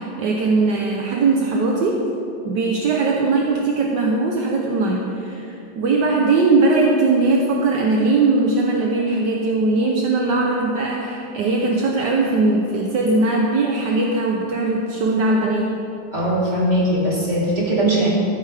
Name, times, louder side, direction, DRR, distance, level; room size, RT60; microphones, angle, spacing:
voice 1, 0.0-2.1 2.4-15.8, right 3 dB, 70° right, 0 dB, 1.5 m, -20 dB
voice 2, 16.1-18.1, right 1 dB, 20° right, -7 dB, 3.7 m, -20 dB
14.5 x 14.0 x 3.5 m, 2.8 s
omnidirectional pair, 2.0 m